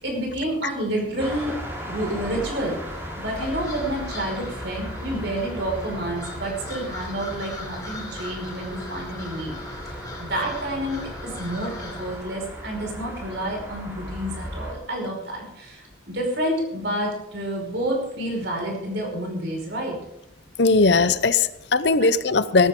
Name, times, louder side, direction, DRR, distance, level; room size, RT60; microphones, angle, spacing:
voice 1, 0.0-1.5 1.9-2.8 3.2-9.5 10.2-20.0, right 1 dB, 60° right, 0 dB, 5.3 m, -29 dB
sound 1, 1.2-14.7, equal, 15° right, 3.4 m, -37 dB
sound 2, 3.3-12.2, left 1 dB, 20° left, 3.2 m, -38 dB
voice 2, 20.6-22.7, left 3 dB, 60° left, 14 dB, 0.7 m, -19 dB
17.0 x 14.5 x 3.8 m, 0.84 s
head